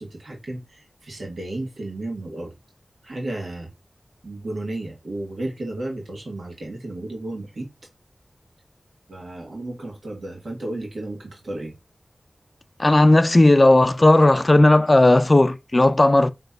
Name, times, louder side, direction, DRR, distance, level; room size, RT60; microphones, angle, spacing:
voice 1, 0.0-2.5 3.0-3.7 4.2-7.7 9.1-11.7, right 2 dB, 85° right, 1.4 m, -33 dB
voice 2, 12.8-16.3, left 2 dB, 40° left, 0.4 m, -15 dB
5.2 x 2.9 x 2.3 m
cardioid pair, 40°, 0 cm